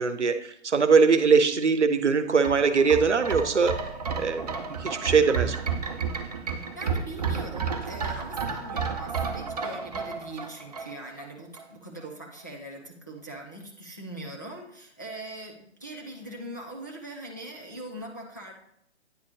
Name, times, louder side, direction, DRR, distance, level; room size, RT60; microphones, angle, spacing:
voice 1, 0.0-3.7 4.2-5.6, right 5 dB, 80° right, 10 dB, 0.8 m, -22 dB
sound 1, 2.3-11.2 11.6-11.7, right 5 dB, 35° right, 0.6 m, -32 dB
voice 2, 6.8-18.5, right 1 dB, 15° left, -2 dB, 0.4 m, -41 dB
9.4 x 4.0 x 3.3 m, 0.73 s
figure-of-eight pair, 140°, 35 cm